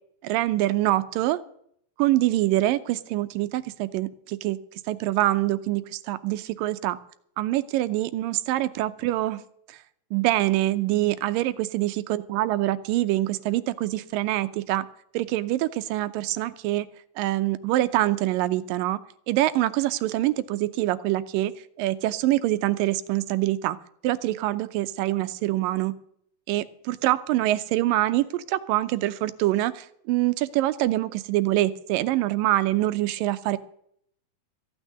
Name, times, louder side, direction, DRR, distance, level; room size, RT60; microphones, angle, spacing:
voice 1, 0.2-1.4 2.0-4.6 4.9-7.0 7.4-9.4 9.7-9.8 10.1-14.9 15.1-16.9 17.2-19.0 19.3-21.5 21.8-23.8 24.0-25.9 26.5-33.6, right 15 dB, 85° right, 13 dB, 2.4 m, -25 dB
15.0 x 6.3 x 9.4 m, 0.67 s
omnidirectional pair, 3.9 m